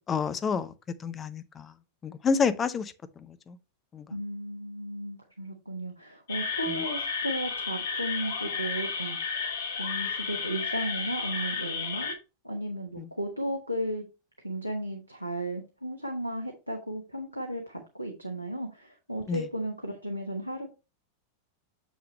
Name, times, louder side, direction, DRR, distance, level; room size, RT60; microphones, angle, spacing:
voice 1, 0.1-0.7 1.0-1.7 2.0-2.9 3.3-3.6 3.9-4.0 13.0-13.1 19.3-19.4, left 5 dB, 20° left, 0.7 m, -29 dB
voice 2, 4.1-9.2 9.8-12.2 12.4-14.0 14.4-20.7, right 1 dB, 90° left, 1.0 m, -34 dB
sound 1, 6.3-12.1, left 5 dB, 60° left, 1.5 m, -32 dB
7.0 x 6.2 x 3.0 m
figure-of-eight pair, 90°, 0 cm